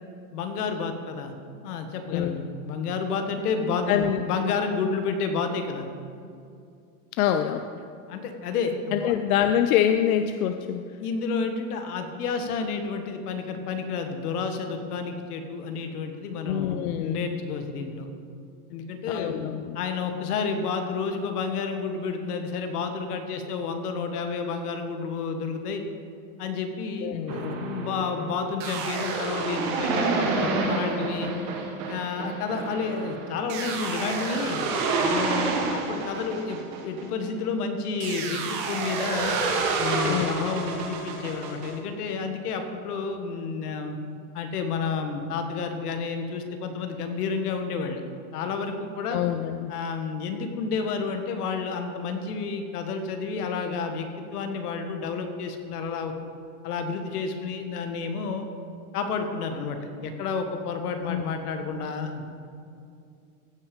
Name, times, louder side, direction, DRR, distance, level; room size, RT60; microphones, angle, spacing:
voice 1, 0.3-1.3 1.6-5.9 8.1-9.1 11.0-18.1 18.7-25.8 26.4-31.3 31.9-34.6 35.0-39.4 39.8-44.0 44.3-48.0 48.3-49.2 49.7-56.1 56.6-58.5 58.9-62.3, left 5 dB, 85° left, 6 dB, 1.5 m, -30 dB
voice 2, 3.9-4.2 7.1-7.7 8.9-10.8 16.4-17.2 19.1-19.8 27.0-27.6 40.1-40.4 49.1-49.7 61.1-61.2, left 10 dB, 70° left, 8 dB, 0.6 m, -25 dB
sound 1, 27.3-37.4 38.0-41.7, right 4 dB, 35° right, 1.3 m, -29 dB
15.5 x 6.1 x 5.2 m, 2.5 s
supercardioid pair, 170°, 44 cm